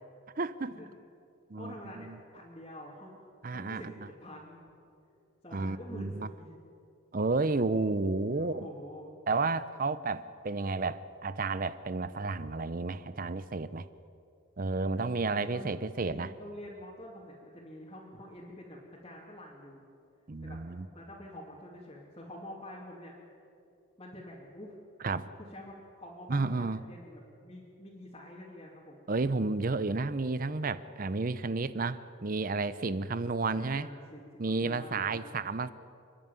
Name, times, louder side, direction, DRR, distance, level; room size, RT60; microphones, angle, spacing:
voice 1, 0.4-0.7 1.5-2.2 3.4-3.9 5.5-6.3 7.1-8.7 9.3-13.9 14.6-16.3 20.3-20.9 25.0-25.3 26.3-26.8 29.1-33.9 34.4-35.7, right 3 dB, 40° right, 14 dB, 0.6 m, -31 dB
voice 2, 1.6-3.2 3.5-4.7 5.4-6.6 8.3-9.1 14.7-15.7 16.0-19.8 20.4-20.6 20.9-23.1 24.0-24.8 25.3-29.0 33.5-35.4, left 1 dB, 25° left, -6 dB, 2.7 m, -47 dB
30.0 x 11.0 x 9.0 m, 2.6 s
head